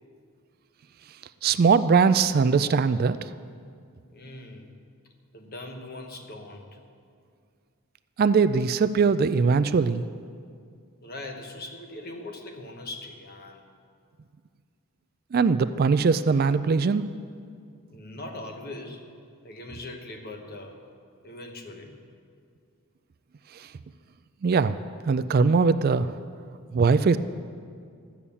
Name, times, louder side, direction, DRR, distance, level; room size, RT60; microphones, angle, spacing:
voice 1, 1.4-3.2 8.2-10.0 15.3-17.1 24.4-24.8 25.1-26.1 26.7-27.2, right 5 dB, 45° right, 13 dB, 0.3 m, -21 dB
voice 2, 4.1-4.8 5.3-6.8 11.0-13.7 17.9-19.1 19.4-20.8 21.2-22.0, left 2 dB, 45° left, 4 dB, 1.2 m, -40 dB
13.0 x 7.1 x 8.4 m, 2.2 s
head